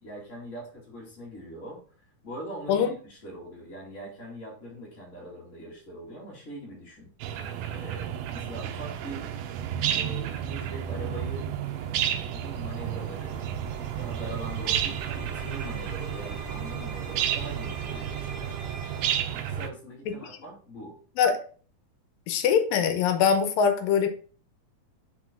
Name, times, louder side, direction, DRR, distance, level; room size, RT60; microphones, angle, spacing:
voice 1, 0.0-1.8 2.2-7.1 7.7-9.3 9.9-11.5 12.3-13.4 13.7-18.5 19.4-21.0, equal, 25° left, -6 dB, 1.9 m, -42 dB
sound 1, 7.2-19.7, right 10 dB, 85° right, 2.4 m, -32 dB
sound 2, 11.6-19.2, right 4 dB, 70° right, 1.1 m, -42 dB
voice 2, 22.3-24.1, left 7 dB, 75° left, 7 dB, 2.5 m, -22 dB
6.1 x 5.7 x 3.7 m, 0.41 s
omnidirectional pair, 4.2 m